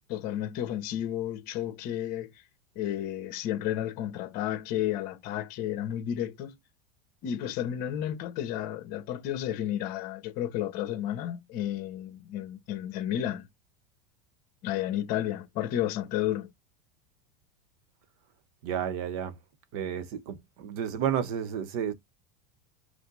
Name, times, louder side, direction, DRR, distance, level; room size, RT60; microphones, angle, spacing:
voice 1, 0.1-2.3 2.7-6.5 7.2-13.5 14.6-16.5, left 11 dB, 45° left, 1.0 m, -32 dB
voice 2, 18.6-19.4 19.7-21.9, right 9 dB, 60° right, 0.8 m, -31 dB
5.3 x 2.1 x 3.9 m
supercardioid pair, 160°, 21 cm